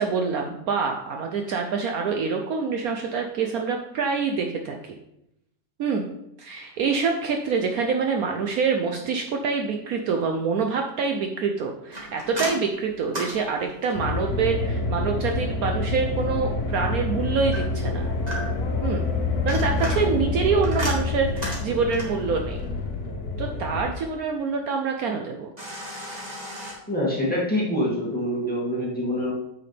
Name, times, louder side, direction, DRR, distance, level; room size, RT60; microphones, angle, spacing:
voice 1, 0.0-4.9 5.8-6.1 6.4-18.1 18.8-19.1 19.4-22.6 23.4-25.5, right 5 dB, 65° right, 3 dB, 1.1 m, -26 dB
sound 1, 11.9-14.2 17.5-18.8 19.3-22.3 25.6-26.7, equal, 25° right, 1.9 m, -35 dB
sound 2, 14.0-23.9, left 3 dB, 65° left, 1.5 m, -27 dB
voice 2, 26.9-29.3, equal, 5° left, -5 dB, 2.2 m, -25 dB
9.3 x 5.6 x 3.4 m, 0.83 s
omnidirectional pair, 1.8 m